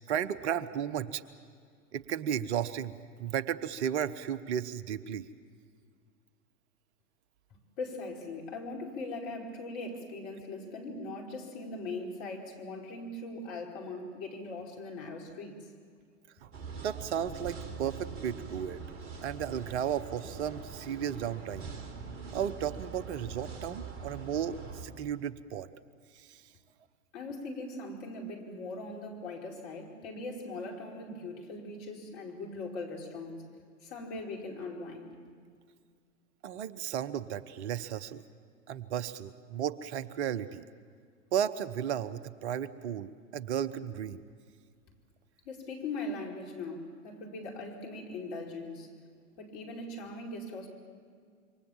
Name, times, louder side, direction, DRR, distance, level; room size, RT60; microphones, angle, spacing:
voice 1, 0.1-1.2 1.9-2.9 3.2-5.3 16.4-18.8 19.2-21.7 22.3-25.7 26.1-26.4 36.4-38.2 38.7-40.7 41.3-44.2, right 9 dB, 55° right, 15 dB, 1.1 m, -34 dB
voice 2, 7.8-15.7 27.1-33.5 33.8-35.2 45.4-48.9 49.3-50.7, left 2 dB, 55° left, 0 dB, 5.1 m, -40 dB
sound 1, 16.5-24.8, right 5 dB, 30° right, 3.8 m, -43 dB
27.0 x 24.5 x 7.4 m, 2.1 s
figure-of-eight pair, 90°, 40 cm